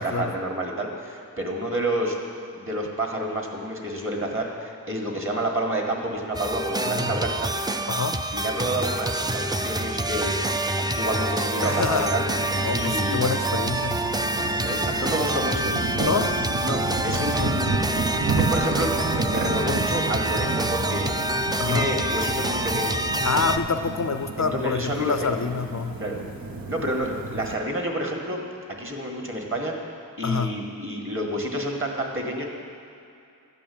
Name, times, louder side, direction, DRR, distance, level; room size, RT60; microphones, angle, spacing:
voice 1, 0.0-2.2 2.5-7.5 8.3-10.4 10.8-12.3 12.7-13.3 14.4-16.2 16.6-21.2 21.6-23.1 24.4-25.3 26.0-26.2 26.7-28.4 28.8-29.7 30.2-32.5, right 1 dB, 35° right, 0 dB, 1.8 m, -29 dB
sound 1, 6.3-23.6, right 1 dB, 10° right, 0.4 m, -26 dB
voice 2, 6.8-7.2 7.9-8.2 11.6-12.1 12.6-14.0 16.0-16.3 17.4-17.5 21.6-21.9 23.2-26.0 30.2-30.5, left 5 dB, 50° left, 8 dB, 0.4 m, -27 dB
sound 2, 12.3-27.6, right 3 dB, 70° right, 0.9 m, -32 dB
12.0 x 5.4 x 8.6 m, 2.6 s
wide cardioid pair, 50°, 37 cm